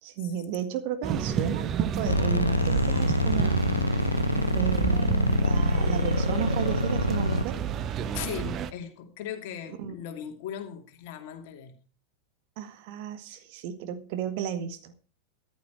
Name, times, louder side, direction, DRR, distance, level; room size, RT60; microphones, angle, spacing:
voice 1, 0.0-3.5 4.5-7.6 9.8-9.9 12.6-14.9, right 8 dB, 45° right, 1.7 m, -34 dB
sound 1, 1.0-8.7, right 9 dB, 30° right, 1.0 m, -30 dB
sound 2, 2.1-7.4, left 1 dB, 85° left, 0.6 m, -25 dB
voice 2, 8.1-11.8 13.3-13.4, left 9 dB, 50° left, 2.6 m, -38 dB
14.0 x 11.5 x 4.6 m
figure-of-eight pair, 90°, 0 cm